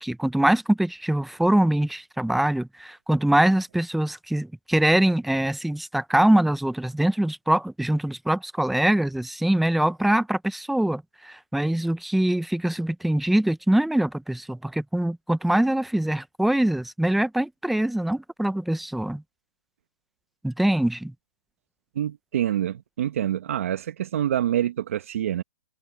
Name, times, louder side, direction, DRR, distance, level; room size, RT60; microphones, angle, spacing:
voice 1, 0.0-19.2 20.4-21.1, right 1 dB, ahead, 0.7 m, -23 dB
voice 2, 21.9-25.4, right 11 dB, 50° right, 1.6 m, -26 dB
hypercardioid pair, 165°, 10 cm